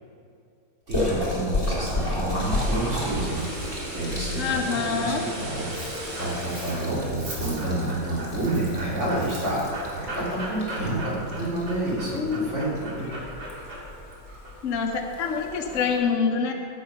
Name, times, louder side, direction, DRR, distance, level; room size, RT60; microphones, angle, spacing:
Splash splatter, 0.9-15.9, left 1 dB, 15° left, 2.6 m, -33 dB
voice 1, 0.9-3.4 3.9-5.1 5.4-9.6 9.9-13.1, right 1 dB, 35° right, -7 dB, 3.5 m, -29 dB
sound 1, 2.0-8.1 8.5-8.7, right 1 dB, 65° right, 2.8 m, -37 dB
voice 2, 4.4-5.2 12.1-12.5 14.6-16.5, left 5 dB, 60° left, 2 dB, 0.9 m, -26 dB
Dog, 5.2-16.0, right 1 dB, 80° right, 3.3 m, -39 dB
15.0 x 6.5 x 5.8 m, 2.5 s
omnidirectional pair, 2.1 m